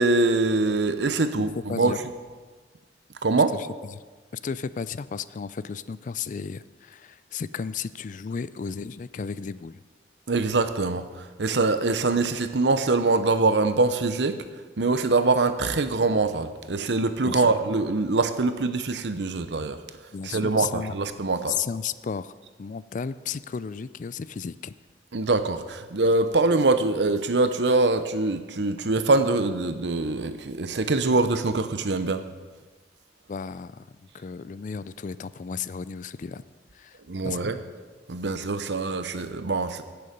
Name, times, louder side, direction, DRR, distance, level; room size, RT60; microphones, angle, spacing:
voice 1, 0.0-2.0 3.2-3.5 10.3-14.4 14.8-19.8 20.2-21.6 25.1-32.2 37.1-37.6 38.1-39.8, right 3 dB, 75° right, 10 dB, 0.8 m, -24 dB
voice 2, 1.4-2.0 3.9-4.0 4.4-9.8 17.2-17.6 20.1-20.9 21.5-22.3 22.6-24.7 33.3-33.8 34.1-36.4 36.7-37.0 37.2-37.5, left 6 dB, 45° left, 16 dB, 0.4 m, -33 dB
17.0 x 6.9 x 5.3 m, 1.4 s
head